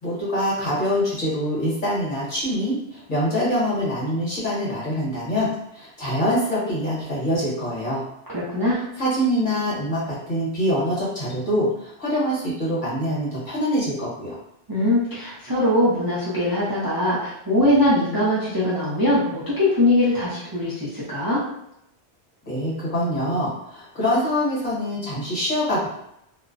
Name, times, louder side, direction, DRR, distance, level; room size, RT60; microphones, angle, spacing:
voice 1, 0.0-5.5 5.7-8.0 9.0-14.3 22.5-25.9, equal, 50° left, -7 dB, 1.2 m, -24 dB
voice 2, 8.3-8.8 14.7-21.4, left 1 dB, 30° right, -8 dB, 0.4 m, -21 dB
2.5 x 2.0 x 2.5 m, 0.79 s
omnidirectional pair, 1.1 m